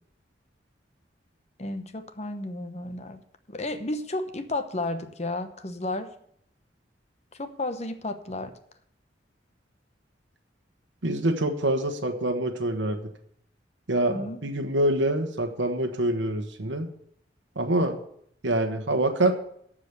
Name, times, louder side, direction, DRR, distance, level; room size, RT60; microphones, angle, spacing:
voice 1, 1.6-3.2 3.5-6.1 7.3-8.5 14.1-14.5, left 2 dB, 35° left, 9 dB, 1.0 m, -32 dB
voice 2, 11.0-13.1 13.9-16.9 17.6-18.0 18.4-19.3, right 1 dB, 80° right, 4 dB, 1.2 m, -25 dB
14.0 x 5.1 x 8.0 m, 0.68 s
head